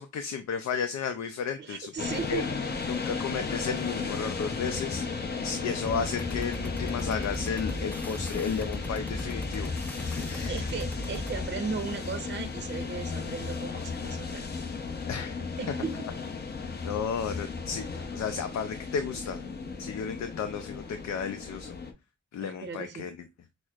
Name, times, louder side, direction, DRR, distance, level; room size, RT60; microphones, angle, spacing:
voice 1, 0.0-2.5 2.9-9.7 10.1-10.7 15.1-15.4 16.8-19.4 19.8-21.8 22.3-23.3, left 6 dB, 70° left, 0.5 m, -33 dB
voice 2, 1.6-2.6 10.5-14.4 15.6-16.0 22.4-23.1, right 5 dB, 35° right, 0.7 m, -36 dB
sound 1, 2.0-21.9, left 4 dB, 35° left, 0.7 m, -35 dB
sound 2, 5.8-11.5, left 1 dB, 5° left, 0.4 m, -38 dB
6.0 x 2.1 x 2.4 m
cardioid pair, 85°, 30 cm